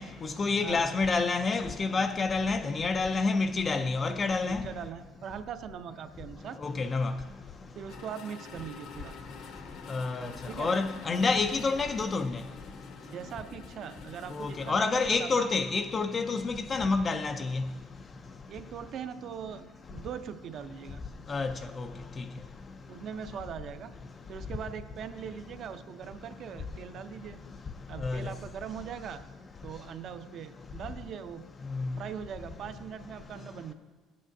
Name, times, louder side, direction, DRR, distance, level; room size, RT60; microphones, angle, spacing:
voice 1, 0.0-4.6 6.6-7.1 9.9-10.3 10.6-12.4 14.3-17.6 21.3-21.9 22.2-22.3 28.0-28.3 31.7-31.9, left 4 dB, 25° left, 0.3 m, -28 dB
voice 2, 0.6-0.9 4.5-6.6 7.7-9.2 10.5-10.7 13.1-15.3 18.5-21.0 22.9-23.9 24.3-27.4 27.9-29.2 29.6-31.4 31.9-33.7, right 8 dB, 45° right, 0.5 m, -41 dB
sound 1, 7.9-14.7, left 5 dB, 60° left, 0.8 m, -48 dB
16.0 x 8.5 x 2.6 m
cardioid pair, 165°, 0 cm